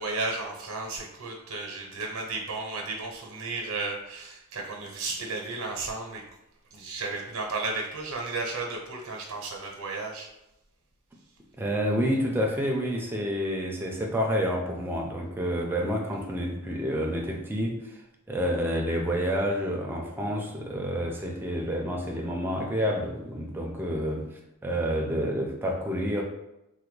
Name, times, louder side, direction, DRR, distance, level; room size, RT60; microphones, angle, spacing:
voice 1, 0.0-6.2 6.7-10.3, right 3 dB, 90° right, 0 dB, 0.7 m, -33 dB
voice 2, 11.6-18.0 18.3-24.3 24.6-26.2, equal, 10° right, 0 dB, 0.4 m, -29 dB
3.3 x 2.2 x 3.1 m, 0.90 s
head